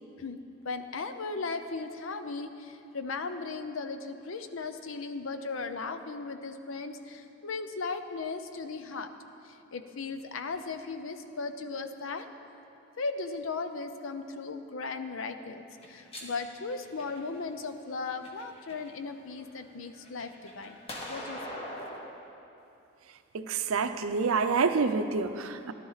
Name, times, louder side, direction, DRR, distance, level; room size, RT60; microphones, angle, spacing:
voice 1, 0.6-9.1 9.4-12.3 13.0-20.8 21.1-21.4, left 4 dB, 75° left, 9 dB, 0.6 m, -37 dB
sound 1, 15.7-17.4 18.0-18.9 19.3-22.0, left 1 dB, 30° left, 1.4 m, -42 dB
voice 2, 23.3-25.7, right 4 dB, 90° right, 10 dB, 0.6 m, -27 dB
14.5 x 11.5 x 4.1 m, 2.9 s
head